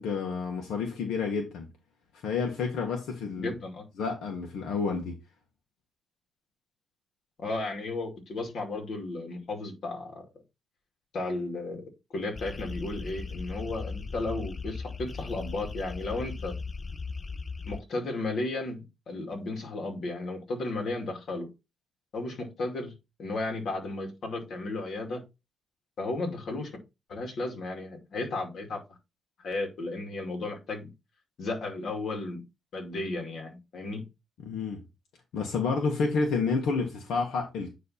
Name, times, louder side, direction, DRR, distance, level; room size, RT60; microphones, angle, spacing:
voice 1, 0.0-1.7 2.1-3.5 4.0-5.2 34.4-34.8 35.3-37.7, left 4 dB, 90° left, 1.5 m, -29 dB
voice 2, 3.4-3.9 7.4-10.2 11.1-16.5 17.7-21.5 22.1-22.9 23.2-25.2 26.0-26.7 27.1-28.8 29.4-30.9 31.4-32.4 32.7-34.1, left 2 dB, 65° left, 2.4 m, -34 dB
sound 1, 12.3-17.8, left 4 dB, 30° left, 0.5 m, -38 dB
9.5 x 3.3 x 4.3 m
cardioid pair, 105°, 0 cm